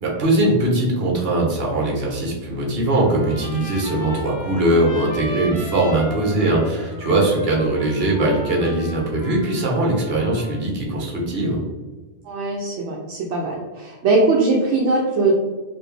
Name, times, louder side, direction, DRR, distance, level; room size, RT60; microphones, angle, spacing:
voice 1, 0.0-11.6, right 1 dB, 55° right, -2 dB, 1.2 m, -20 dB
Trumpet, 2.9-10.6, left 1 dB, 60° left, 1.1 m, -37 dB
voice 2, 12.2-15.3, right 3 dB, 75° right, -2 dB, 0.9 m, -20 dB
4.0 x 2.6 x 3.3 m, 1.3 s
omnidirectional pair, 1.2 m